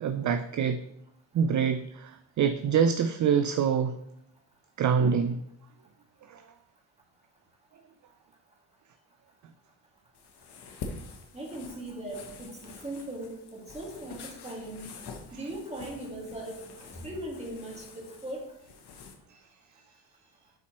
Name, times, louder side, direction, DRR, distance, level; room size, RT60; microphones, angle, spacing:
voice 1, 0.0-0.8 1.3-4.0 4.8-5.4 6.3-6.4, right 7 dB, 45° right, 9 dB, 0.4 m, -25 dB
sound 1, 10.1-19.1, left 4 dB, 60° left, 1.1 m, -46 dB
voice 2, 11.3-14.9 15.3-18.5, right 1 dB, 15° right, -2 dB, 2.1 m, -39 dB
8.7 x 4.2 x 3.0 m, 0.77 s
cardioid pair, 80°, 44 cm